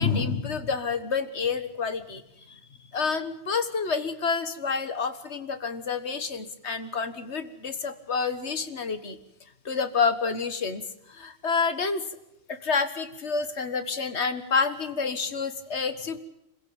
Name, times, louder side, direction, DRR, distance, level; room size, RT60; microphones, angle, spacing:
voice 1, 0.0-2.2 2.5-2.6 2.9-9.2 9.7-10.8 11.1-12.0 12.5-16.2, left 5 dB, 75° left, 11 dB, 1.8 m, -28 dB
26.0 x 16.0 x 8.8 m, 0.84 s
omnidirectional pair, 1.1 m